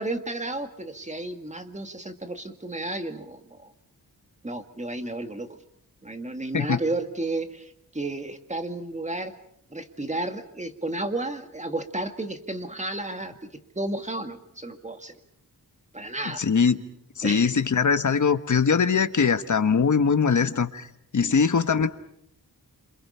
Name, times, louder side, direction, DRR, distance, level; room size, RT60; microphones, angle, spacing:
voice 1, 0.0-3.7 4.4-5.6 6.0-9.4 9.7-15.1 15.9-16.4 17.2-17.5 21.2-21.3, right 2 dB, 20° right, 6 dB, 2.0 m, -32 dB
voice 2, 16.4-16.8 17.2-20.9 21.1-21.9, left 5 dB, 55° left, 10 dB, 1.3 m, -21 dB
28.5 x 27.5 x 5.7 m, 0.72 s
wide cardioid pair, 125°, 37 cm